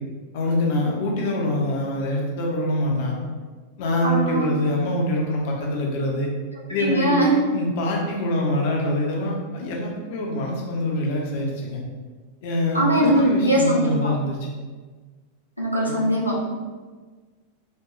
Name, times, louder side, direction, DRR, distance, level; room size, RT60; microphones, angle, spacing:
voice 1, 0.3-3.2 3.8-6.3 6.7-7.2 7.5-11.8 12.4-14.4 15.9-16.0, left 1 dB, 50° left, -1 dB, 0.8 m, -24 dB
voice 2, 4.0-4.5 6.8-7.4 12.7-14.1 15.6-16.4, right 1 dB, 90° left, -4 dB, 0.7 m, -21 dB
4.2 x 2.3 x 2.9 m, 1.4 s
figure-of-eight pair, 90°, 0 cm